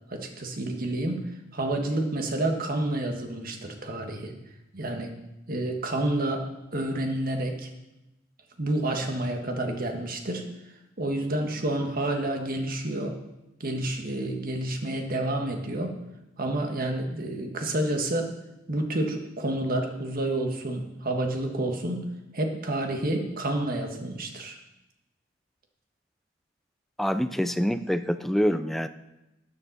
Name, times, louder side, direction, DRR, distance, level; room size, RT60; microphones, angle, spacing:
voice 1, 0.1-1.2 1.5-4.3 4.7-5.1 5.5-7.7 8.6-10.4 11.0-13.1 13.6-15.9 16.4-18.3 18.7-22.0 22.3-24.6, right 1 dB, 50° right, 4 dB, 1.6 m, -29 dB
voice 2, 27.0-28.9, equal, ahead, 11 dB, 0.4 m, -26 dB
13.0 x 9.0 x 4.1 m, 0.94 s
head